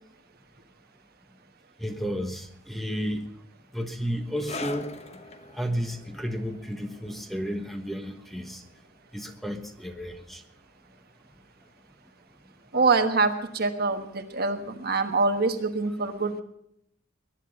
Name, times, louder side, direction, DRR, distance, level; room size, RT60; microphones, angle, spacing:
voice 1, 1.8-3.2 3.7-4.9 5.5-8.6 9.1-10.4 12.7-12.8, equal, ahead, 5 dB, 1.2 m, -32 dB
sound 1, 4.4-11.4 11.7-11.9 12.6-12.7, left 3 dB, 35° left, 1.0 m, -44 dB
voice 2, 12.7-16.4, right 3 dB, 50° right, 7 dB, 1.4 m, -25 dB
21.0 x 10.5 x 5.3 m, 0.74 s
head